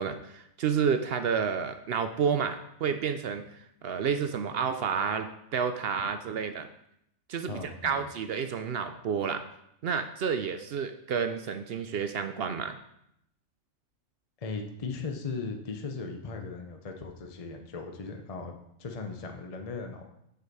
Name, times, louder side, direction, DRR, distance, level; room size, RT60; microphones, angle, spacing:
voice 1, 0.0-6.7 7.3-9.4 9.8-12.8, right 6 dB, 60° right, 8 dB, 0.6 m, -30 dB
voice 2, 7.5-8.0 14.4-20.1, left 4 dB, 35° left, 4 dB, 0.7 m, -38 dB
9.2 x 5.1 x 4.7 m, 0.78 s
omnidirectional pair, 1.4 m